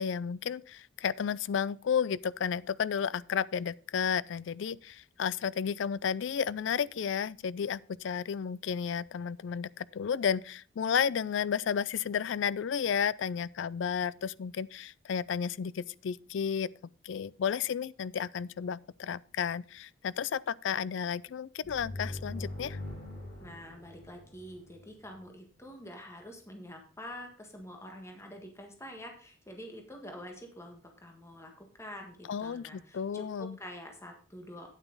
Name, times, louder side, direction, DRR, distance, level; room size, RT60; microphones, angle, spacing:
voice 1, 0.0-16.7 17.0-22.8 32.3-33.6, left 7 dB, 70° left, 0.4 m, -32 dB
sound 1, 21.6-25.2, left 1 dB, 45° left, 3.7 m, -42 dB
voice 2, 23.4-34.7, equal, 15° left, 1.6 m, -47 dB
9.2 x 8.8 x 3.9 m
head